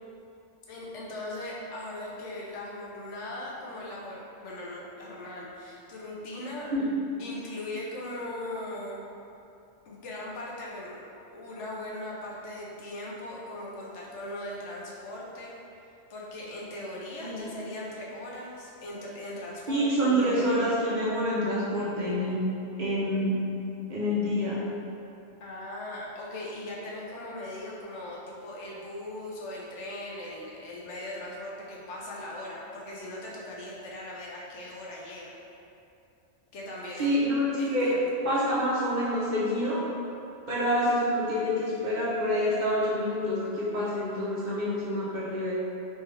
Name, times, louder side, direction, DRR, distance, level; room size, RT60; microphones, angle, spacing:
voice 1, 0.7-6.7 7.2-9.0 9.9-11.0 11.3-15.5 16.1-20.6 25.4-35.4 36.5-37.1 37.6-38.0, left 1 dB, 90° left, -4 dB, 1.0 m, -39 dB
voice 2, 17.2-17.5 19.7-22.4 22.8-23.3 23.9-24.6 37.0-37.9 38.2-39.8 40.5-45.5, equal, 45° right, -8 dB, 0.8 m, -27 dB
3.4 x 3.2 x 3.3 m, 2.7 s
omnidirectional pair, 1.2 m